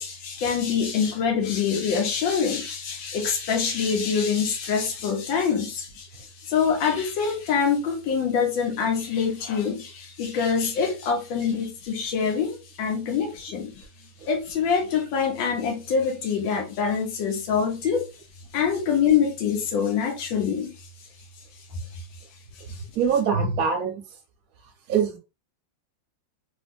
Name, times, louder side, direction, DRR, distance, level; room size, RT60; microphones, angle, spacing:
voice 1, 0.0-13.8 14.3-18.0 18.5-20.7 21.9-22.0 22.7-22.8, left 6 dB, 90° left, 1.5 m, -25 dB
voice 2, 22.9-24.0 24.9-25.2, right 6 dB, 60° right, 1.0 m, -23 dB
3.4 x 2.6 x 2.5 m
omnidirectional pair, 2.1 m